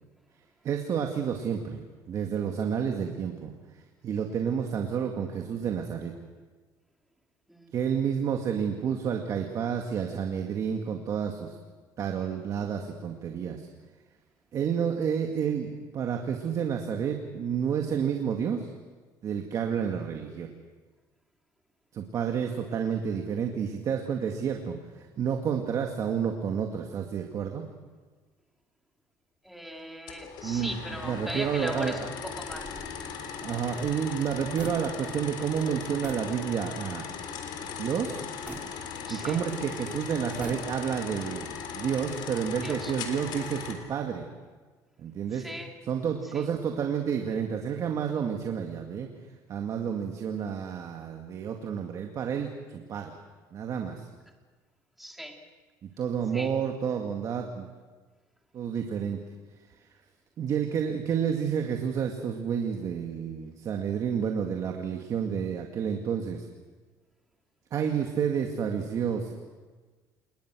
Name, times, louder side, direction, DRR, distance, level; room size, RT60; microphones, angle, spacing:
voice 1, 0.6-3.5 4.0-6.1 7.7-11.6 12.0-13.7 14.5-18.7 19.2-20.5 21.9-27.6 30.4-30.8 31.0-32.1 33.4-37.1 37.6-38.2 39.1-44.2 45.0-45.5 45.9-49.1 49.5-53.1 53.5-54.0 55.8-57.7 58.5-59.2 60.4-66.5 67.7-69.3, right 7 dB, 45° right, 3 dB, 2.1 m, -30 dB
voice 2, 29.4-32.8 39.1-39.4 42.6-42.9 45.3-45.8 46.2-46.5 55.0-55.4 56.3-56.6, equal, ahead, 2 dB, 3.1 m, -39 dB
sound 1, 30.1-43.7, left 6 dB, 70° left, 3.8 m, -38 dB
sound 2, 32.5-35.3 35.5-35.7 36.0-36.3 36.8-36.9 38.5-39.5 40.2-41.1, right 3 dB, 20° right, 3.7 m, -45 dB
28.5 x 20.0 x 6.3 m, 1.4 s
cardioid pair, 120°, 8 cm